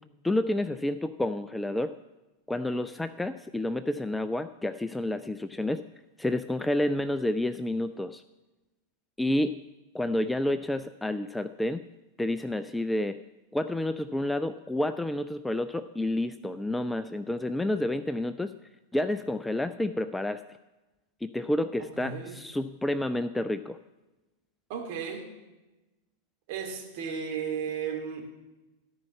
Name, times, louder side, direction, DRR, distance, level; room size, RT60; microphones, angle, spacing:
voice 1, 0.2-2.0 2.5-5.8 6.2-8.2 9.2-9.6 9.9-11.8 12.2-13.2 13.5-18.5 18.9-20.4 21.2-23.8, left 1 dB, 5° left, 11 dB, 0.3 m, -29 dB
voice 2, 21.8-22.4 24.7-25.3 26.5-28.2, right 7 dB, 45° right, 1 dB, 2.4 m, -34 dB
13.5 x 5.5 x 7.2 m, 1.1 s
figure-of-eight pair, 90°, 0 cm